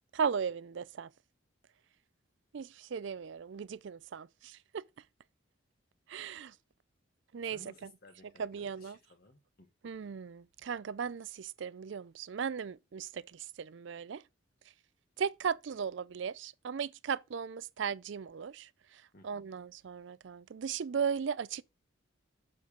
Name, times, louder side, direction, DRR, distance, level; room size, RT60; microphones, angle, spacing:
voice 1, 0.1-1.1 2.5-4.8 6.1-6.5 7.3-7.9 8.4-9.0 9.8-14.2 15.2-21.6, right 6 dB, 60° right, 0.4 m, -37 dB
voice 2, 7.5-9.7 19.1-19.5, left 1 dB, 50° left, 1.4 m, -58 dB
7.8 x 6.8 x 5.0 m
head